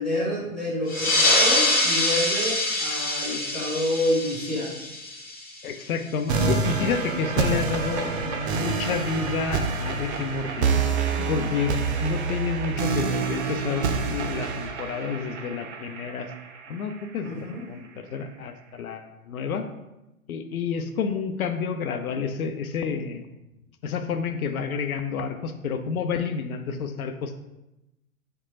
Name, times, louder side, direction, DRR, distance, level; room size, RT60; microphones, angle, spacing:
voice 1, 0.0-4.7 11.1-11.5 17.2-17.6, left 1 dB, ahead, -9 dB, 0.4 m, -28 dB
sound 1, 0.9-5.9, left 2 dB, 20° left, 1.0 m, -24 dB
voice 2, 5.6-10.7 11.3-16.3 16.7-19.7 20.3-23.3 23.8-27.4, left 6 dB, 75° left, 8 dB, 0.5 m, -29 dB
sound 2, 6.3-17.3, right 5 dB, 50° right, 0.5 m, -27 dB
3.0 x 2.2 x 4.1 m, 0.94 s
figure-of-eight pair, 115°, 43 cm